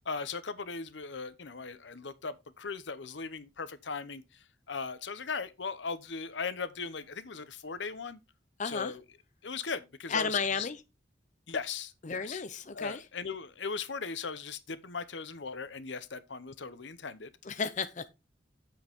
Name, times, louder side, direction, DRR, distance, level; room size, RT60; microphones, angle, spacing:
voice 1, 0.1-4.2 4.7-8.2 8.6-9.0 9.4-10.7 11.5-12.4 12.7-17.3, left 5 dB, 75° left, 0.9 m, -38 dB
voice 2, 8.6-8.9 10.1-10.8 12.0-13.0 17.4-18.1, left 5 dB, 45° left, 0.7 m, -33 dB
8.8 x 7.9 x 3.6 m
head